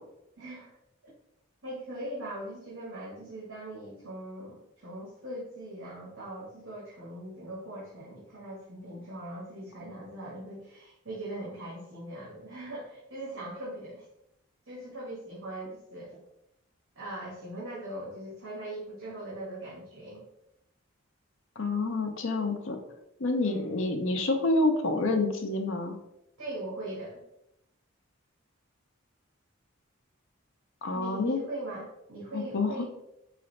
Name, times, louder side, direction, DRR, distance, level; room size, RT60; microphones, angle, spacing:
voice 1, 0.4-0.7 1.0-1.1 1.6-14.1 14.7-16.2 16.9-20.2 23.4-23.7 26.4-27.2 30.9-32.8, right 1 dB, 60° right, -7 dB, 1.3 m, -40 dB
voice 2, 21.6-22.8 23.2-26.0 30.8-31.4 32.3-32.8, left 2 dB, 65° left, 5 dB, 0.6 m, -28 dB
4.8 x 2.6 x 3.2 m, 0.82 s
head